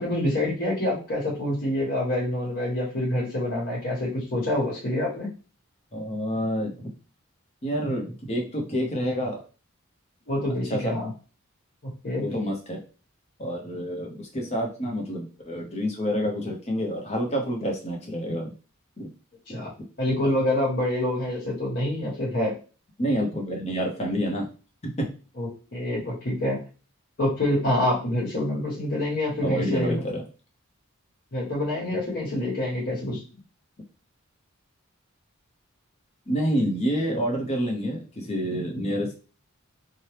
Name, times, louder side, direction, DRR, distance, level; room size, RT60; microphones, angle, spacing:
voice 1, 0.0-5.3 10.3-11.1 11.8-12.2 19.5-19.7 20.0-22.5 25.4-26.6 27.2-30.0 31.3-33.2, left 1 dB, 50° left, -4 dB, 1.1 m, -26 dB
voice 2, 5.9-6.9 7.6-9.4 10.7-11.0 12.2-12.8 13.4-18.5 19.0-19.1 19.5-19.7 23.0-24.5 24.8-25.1 29.4-30.2 33.1-33.2 36.3-39.1, equal, 30° left, 1 dB, 0.7 m, -28 dB
2.9 x 2.2 x 3.2 m, 0.35 s
head